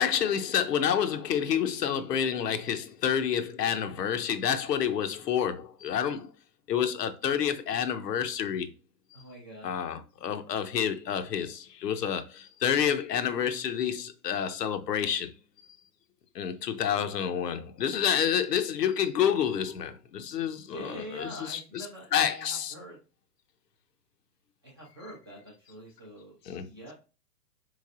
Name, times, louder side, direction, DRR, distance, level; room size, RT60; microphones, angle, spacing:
voice 1, 0.0-6.3 6.7-8.7 9.1-9.2 9.6-15.3 16.3-21.9 22.1-22.7 26.5-26.7, left 8 dB, 80° left, 0.7 m, -29 dB
voice 2, 9.1-9.7 20.7-23.0 24.6-26.9, right 1 dB, 15° right, 0.4 m, -45 dB
3.7 x 3.2 x 2.4 m
hypercardioid pair, 140°, 48 cm